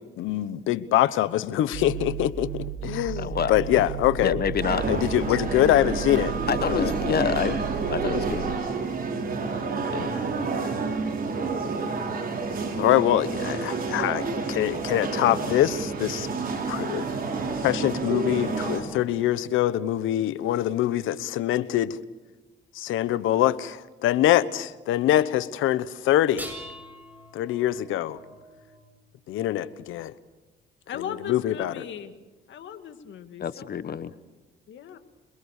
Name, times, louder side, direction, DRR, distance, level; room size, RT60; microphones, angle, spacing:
voice 1, 0.0-4.4 4.9-6.4 6.7-6.9 12.8-16.3 16.7-17.1 17.6-22.0 22.7-26.5 27.3-28.2 29.3-30.1 31.0-31.8, left 13 dB, 90° left, 16 dB, 1.1 m, -24 dB
sound 1, 1.7-8.6, right 9 dB, 65° right, 1.4 m, -34 dB
voice 2, 3.2-3.8 4.2-5.0 6.5-8.5 9.9-10.1 33.4-34.1, left 8 dB, 50° left, 14 dB, 1.1 m, -28 dB
sound 2, 4.6-18.8, right 4 dB, 45° right, 6.6 m, -29 dB
sound 3, 26.2-29.5 31.0-31.1 32.0-32.1, equal, 10° right, 7.9 m, -44 dB
voice 3, 30.9-32.1 32.5-34.0 34.7-35.0, left 8 dB, 70° left, 8 dB, 2.3 m, -38 dB
27.5 x 22.5 x 6.7 m, 1.2 s
cardioid pair, 90°, 20 cm